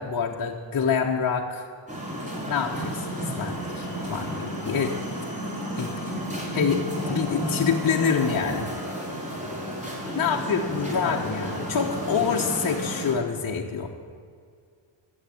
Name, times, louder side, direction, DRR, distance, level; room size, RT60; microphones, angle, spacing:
voice 1, 0.0-1.7 2.4-4.9 5.8-6.1 6.5-6.8 7.1-8.7 10.1-13.9, left 6 dB, 45° left, -1 dB, 1.1 m, -26 dB
sound 1, 1.9-13.1, right 1 dB, 15° right, 3.7 m, -32 dB
voice 2, 2.0-2.4 6.1-6.5 10.1-11.0, equal, 5° left, 2 dB, 2.9 m, -39 dB
13.5 x 7.4 x 8.5 m, 2.2 s
cardioid pair, 90°, 50 cm